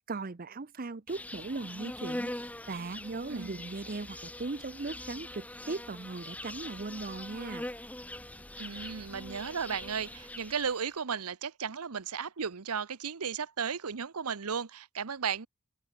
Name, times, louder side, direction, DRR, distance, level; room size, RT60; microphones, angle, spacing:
voice 1, 0.1-2.3 2.7-7.6, right 3 dB, 40° right, 0.7 m, -38 dB
Insect, 1.1-10.9, left 1 dB, 5° left, 1.3 m, -42 dB
voice 2, 3.3-3.6 8.6-15.5, right 6 dB, 85° right, 0.9 m, -35 dB
open air
head